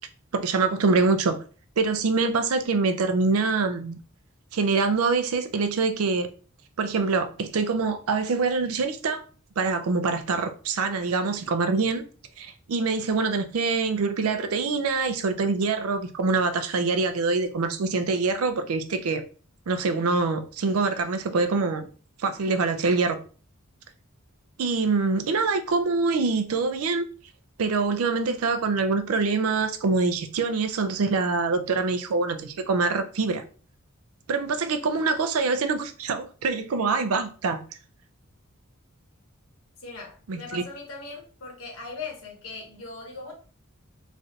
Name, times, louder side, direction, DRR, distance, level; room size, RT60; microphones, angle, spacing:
voice 1, 0.3-1.4 1.8-4.0 4.5-6.3 6.8-9.2 9.6-12.0 12.4-19.2 19.7-21.9 22.2-23.2 24.6-27.0 27.6-33.4 34.3-37.6 40.3-40.6, right 4 dB, 80° right, 0.4 m, -25 dB
voice 2, 39.8-43.3, left 4 dB, 85° left, 1.2 m, -40 dB
3.1 x 2.5 x 2.7 m
head